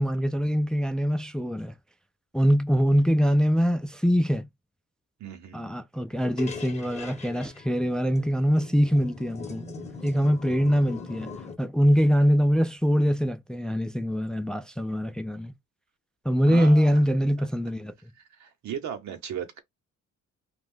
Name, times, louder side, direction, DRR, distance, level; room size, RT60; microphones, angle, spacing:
voice 1, 0.0-1.7 2.3-4.5 5.5-9.7 10.0-11.3 11.6-15.5 16.3-17.9, equal, 5° left, 0.3 m, -23 dB
voice 2, 5.2-5.7 16.5-17.0 17.4-17.5 18.2-19.6, right 8 dB, 65° right, 0.9 m, -37 dB
sound 1, 6.2-11.5, left 4 dB, 20° left, 0.8 m, -41 dB
2.5 x 2.3 x 3.6 m
cardioid pair, 90°, 30 cm